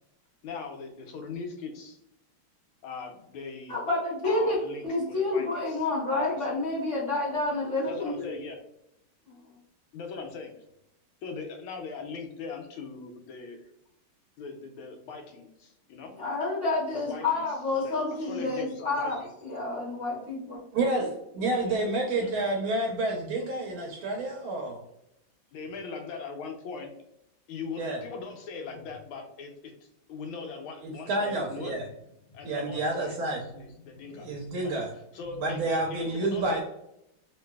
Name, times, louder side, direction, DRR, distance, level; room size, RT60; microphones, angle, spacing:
voice 1, 0.4-2.0 2.8-3.8 4.2-5.8 6.2-6.6 7.8-8.6 9.9-10.5 11.2-13.7 14.4-16.1 16.9-17.4 17.7-19.3 21.6-21.8 22.1-22.4 24.1-24.2 25.5-26.9 27.5-34.8 35.1-36.6, left 4 dB, 75° left, 4 dB, 1.3 m, -40 dB
voice 2, 3.7-4.6 4.8-8.3 16.1-19.2 19.4-20.6, left 2 dB, 45° left, -7 dB, 1.0 m, -29 dB
voice 3, 20.7-24.8 27.8-28.0 30.8-31.8 32.4-33.4 34.1-34.9 35.4-36.6, right 2 dB, 75° right, 0 dB, 1.4 m, -29 dB
3.2 x 2.9 x 2.2 m, 0.81 s
omnidirectional pair, 2.4 m